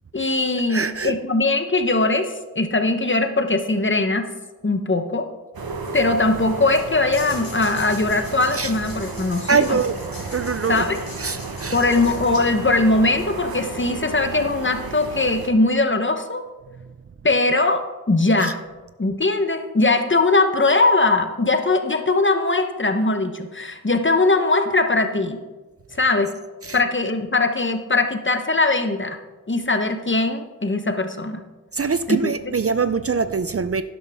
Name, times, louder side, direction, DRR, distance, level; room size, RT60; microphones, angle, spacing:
voice 1, 0.1-4.3 4.6-5.3 5.9-9.8 10.7-11.0 11.7-16.4 17.2-18.6 19.0-25.4 26.0-26.3 26.7-29.2 29.5-31.4 32.1-32.3, left 2 dB, 35° left, 7 dB, 0.9 m, -20 dB
voice 2, 0.7-1.1 8.5-8.7 9.5-9.9 10.3-10.9 11.2-11.8 18.4-18.5 26.6-26.8 31.7-33.8, right 5 dB, 40° right, 12 dB, 0.4 m, -23 dB
sound 1, 5.5-15.5, right 3 dB, 85° right, 1.1 m, -33 dB
sound 2, 7.1-12.8, left 2 dB, 75° left, 2.9 m, -42 dB
11.5 x 11.0 x 3.5 m, 1.2 s
wide cardioid pair, 70°, 35 cm